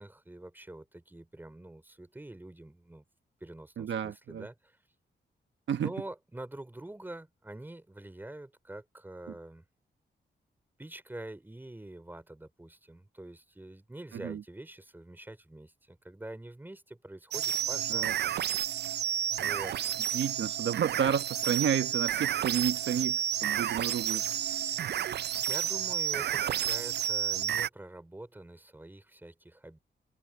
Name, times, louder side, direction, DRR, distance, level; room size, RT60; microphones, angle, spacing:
voice 1, 0.0-3.0 3.4-4.8 5.8-9.6 10.8-18.1 19.4-19.8 25.5-29.8, right 1 dB, 10° right, 4.0 m, -45 dB
voice 2, 3.8-4.4 5.7-5.9 14.1-14.4 17.9-18.1 20.1-24.2, right 8 dB, 85° right, 1.1 m, -31 dB
sound 1, 17.3-27.7, right 10 dB, 65° right, 0.4 m, -31 dB
wide cardioid pair, 155°, 19 cm